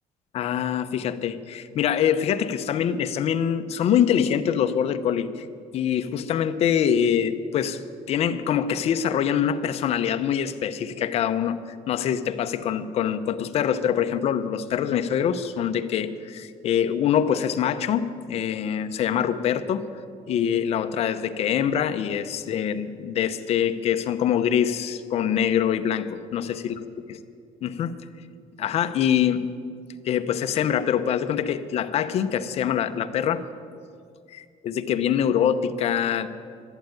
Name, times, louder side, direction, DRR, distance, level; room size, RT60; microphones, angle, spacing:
voice 1, 0.3-5.5 5.7-7.8 8.1-11.6 11.9-19.9 20.3-26.8 27.6-28.0 28.6-29.5 30.0-33.4 34.3-36.3, left 9 dB, 50° left, 9 dB, 0.8 m, -24 dB
13.0 x 11.0 x 9.3 m, 2.3 s
cardioid pair, 160°, 14 cm